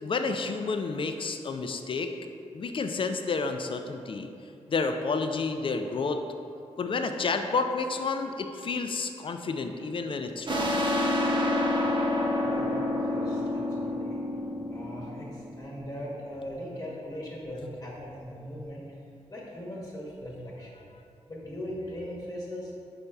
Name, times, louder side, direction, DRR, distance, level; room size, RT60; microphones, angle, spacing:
voice 1, 0.0-2.1 2.5-4.3 4.7-6.2 6.8-10.8, left 4 dB, 45° left, 6 dB, 0.4 m, -30 dB
sound 1, 10.5-15.8, left 1 dB, 40° right, 0.6 m, -28 dB
voice 2, 12.4-14.2 14.7-18.8 19.3-20.8 21.3-22.7, equal, 30° left, -5 dB, 1.1 m, -39 dB
5.2 x 4.2 x 2.3 m, 2.6 s
cardioid pair, 50°, 12 cm